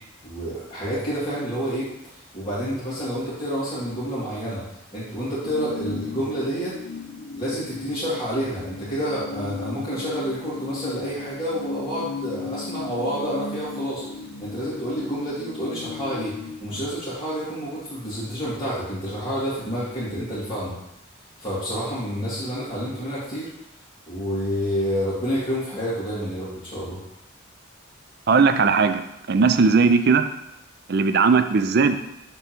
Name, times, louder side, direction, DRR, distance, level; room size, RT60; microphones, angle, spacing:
voice 1, 0.2-1.9 2.3-4.6 4.9-6.7 7.4-14.0 14.4-20.8 21.4-23.5 24.1-27.0, equal, 25° left, -11 dB, 2.3 m, -29 dB
sound 1, 5.4-16.8, left 4 dB, 55° left, 0.8 m, -36 dB
voice 2, 28.3-29.0 29.3-30.3 30.9-32.0, right 4 dB, 50° right, 9 dB, 0.4 m, -18 dB
6.8 x 3.6 x 6.0 m, 0.82 s
head